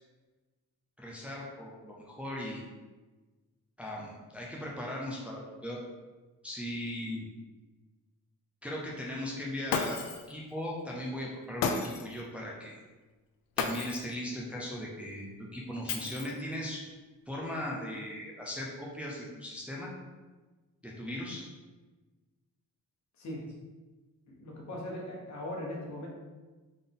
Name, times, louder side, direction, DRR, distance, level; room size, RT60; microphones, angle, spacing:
voice 1, 1.0-2.6 3.8-5.8 6.4-7.3 8.6-10.0 10.3-12.8 13.6-16.8 17.3-19.9 20.8-21.5, left 1 dB, 5° right, -3 dB, 0.6 m, -38 dB
Shatter, 9.7-10.3 11.6-12.2 13.6-14.1 15.9-16.5, left 5 dB, 90° left, 0.5 m, -33 dB
voice 2, 23.2-23.5 24.3-26.1, left 1 dB, 55° left, -2 dB, 1.2 m, -39 dB
4.0 x 3.8 x 3.5 m, 1.2 s
wide cardioid pair, 160°, 34 cm